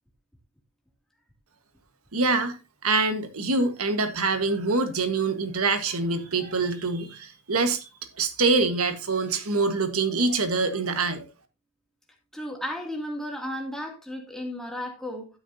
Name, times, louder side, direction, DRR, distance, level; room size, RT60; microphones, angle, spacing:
voice 1, 2.1-7.9 8.2-11.2, right 3 dB, 90° right, 1.4 m, -25 dB
voice 2, 12.3-15.3, left 1 dB, ahead, 2.5 m, -34 dB
12.0 x 9.4 x 2.7 m
head